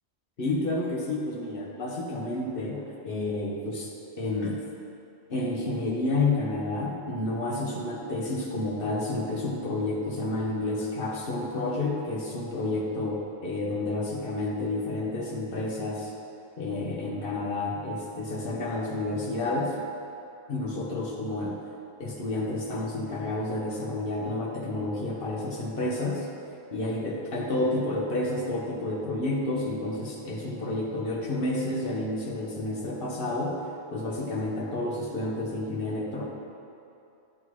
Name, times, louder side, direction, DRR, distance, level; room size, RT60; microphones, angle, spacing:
voice 1, 0.4-4.6 5.3-16.1 16.6-19.8 20.5-21.6 22.0-26.3 26.7-33.6 33.9-36.2, left 2 dB, 55° left, -2 dB, 1.1 m, -30 dB
9.9 x 5.6 x 3.1 m, 2.7 s
omnidirectional pair, 1.2 m